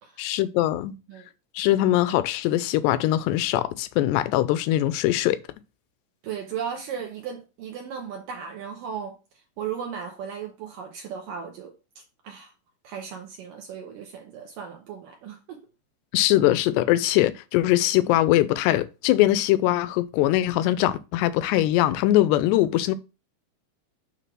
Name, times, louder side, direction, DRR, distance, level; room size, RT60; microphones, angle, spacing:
voice 1, 0.2-0.9 1.6-5.4 16.1-23.0, left 14 dB, 85° left, 2.7 m, -22 dB
voice 2, 6.2-9.2 9.6-12.5 12.8-15.6, right 7 dB, 70° right, 2.2 m, -36 dB
9.2 x 3.3 x 6.0 m
omnidirectional pair, 4.9 m